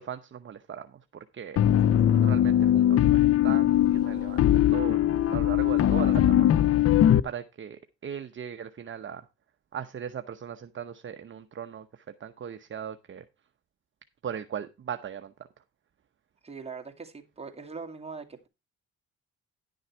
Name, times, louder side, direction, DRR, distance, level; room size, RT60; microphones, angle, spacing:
voice 1, 0.0-1.6 2.1-6.5 7.2-9.3 9.7-13.3 14.2-15.6, right 8 dB, 40° right, 0.9 m, -38 dB
sound 1, 1.6-7.2, left 11 dB, 50° left, 0.6 m, -21 dB
voice 2, 16.4-18.5, right 4 dB, 20° right, 2.2 m, -41 dB
11.0 x 6.4 x 4.5 m
cardioid pair, 90°, 30 cm